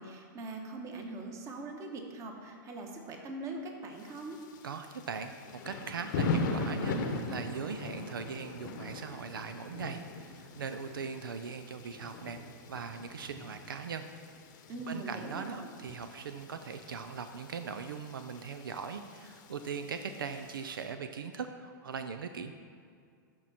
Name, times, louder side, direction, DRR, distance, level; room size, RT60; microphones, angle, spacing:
voice 1, 0.0-4.4 14.7-15.7, right 2 dB, 30° right, 3 dB, 1.2 m, -42 dB
Thunder / Rain, 4.0-20.8, left 3 dB, 60° left, 0.9 m, -40 dB
voice 2, 4.6-12.4 12.7-14.1 14.9-22.5, right 6 dB, 90° right, 8 dB, 0.5 m, -40 dB
12.5 x 4.5 x 4.2 m, 2.2 s
hypercardioid pair, 120°, 11 cm